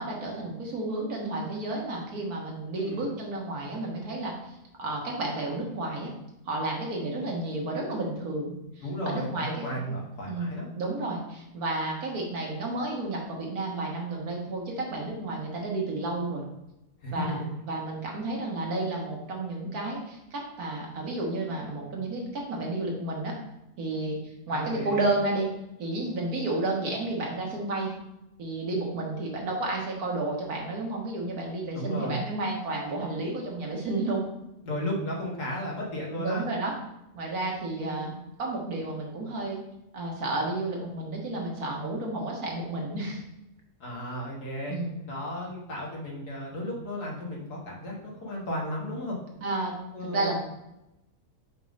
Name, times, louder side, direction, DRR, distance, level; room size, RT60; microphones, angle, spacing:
voice 1, 0.0-6.1 6.5-9.7 10.3-16.4 17.1-23.3 23.8-24.2 24.5-25.5 25.8-27.9 28.4-34.2 36.2-36.7 37.1-39.6 39.9-43.2 44.7-44.9 49.4-49.7 50.1-50.3, right 2 dB, 70° right, -1 dB, 1.8 m, -31 dB
voice 2, 2.7-3.0 8.8-10.7 17.0-17.4 24.5-25.1 31.7-32.2 34.6-36.5 37.8-38.1 43.8-44.8 45.1-49.2 49.9-50.3, equal, 90° left, -3 dB, 2.0 m, -34 dB
5.4 x 3.6 x 5.1 m, 0.90 s
omnidirectional pair, 1.6 m